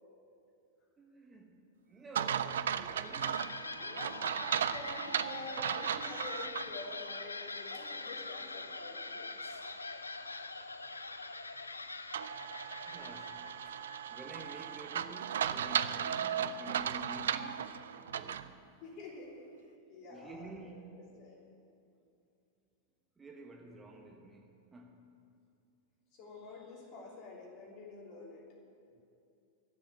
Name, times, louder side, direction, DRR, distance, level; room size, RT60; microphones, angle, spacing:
voice 1, 1.0-1.6 1.8-4.1 4.8-5.7 12.9-13.8 14.1-18.6 20.1-21.2 23.2-25.1 29.0-29.1, right 1 dB, 15° right, 2 dB, 1.2 m, -51 dB
sound 1, 2.1-6.7 7.1-7.2 12.1-18.5, right 9 dB, 65° right, 0.4 m, -36 dB
sound 2, 2.6-15.1, left 3 dB, 80° left, 0.5 m, -44 dB
voice 2, 3.8-9.7 12.9-13.3 18.8-19.5 19.9-20.8 21.2-21.5 26.1-28.6, left 3 dB, 40° left, -1 dB, 3.1 m, -48 dB
12.5 x 7.8 x 8.7 m, 2.6 s
figure-of-eight pair, 90°, 0 cm